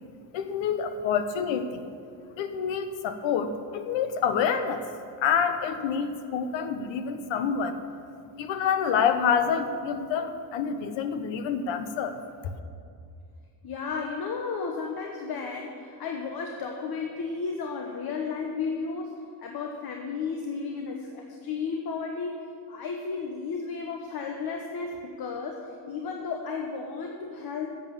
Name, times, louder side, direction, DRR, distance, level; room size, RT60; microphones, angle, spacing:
voice 1, 0.3-1.8 2.4-4.8 5.2-7.8 8.4-12.2, left 7 dB, 80° left, 9 dB, 1.1 m, -27 dB
voice 2, 13.6-27.7, left 5 dB, 55° left, 2 dB, 1.1 m, -33 dB
11.0 x 8.1 x 7.3 m, 2.4 s
cardioid pair, 120°, 44 cm